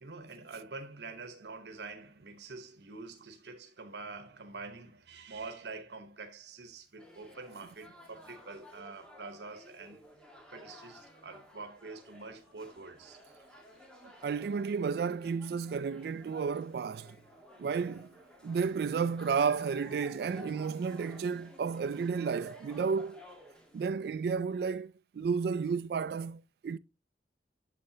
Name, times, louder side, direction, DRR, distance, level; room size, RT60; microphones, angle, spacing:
voice 1, 0.0-10.0 10.5-13.3 14.0-14.1, right 3 dB, 75° right, 1.0 m, -46 dB
sound 1, 7.0-23.9, left 1 dB, 5° left, 1.4 m, -54 dB
voice 2, 14.2-17.2 17.6-18.1 18.4-23.2 23.7-26.8, right 5 dB, 60° right, 0.3 m, -32 dB
8.5 x 6.8 x 2.7 m
head